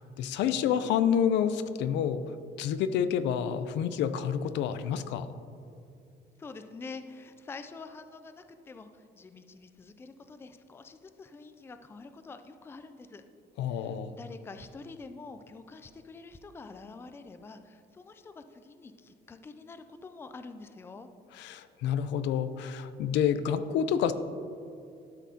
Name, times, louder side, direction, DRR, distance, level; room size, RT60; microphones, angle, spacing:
voice 1, 0.0-2.2 2.6-5.3 13.6-14.1 21.4-24.1, left 8 dB, 85° left, 12 dB, 0.4 m, -28 dB
voice 2, 6.4-13.2 13.7-21.1, left 4 dB, 15° left, 9 dB, 0.3 m, -46 dB
11.5 x 6.3 x 2.8 m, 2.6 s
cardioid pair, 145°, 18 cm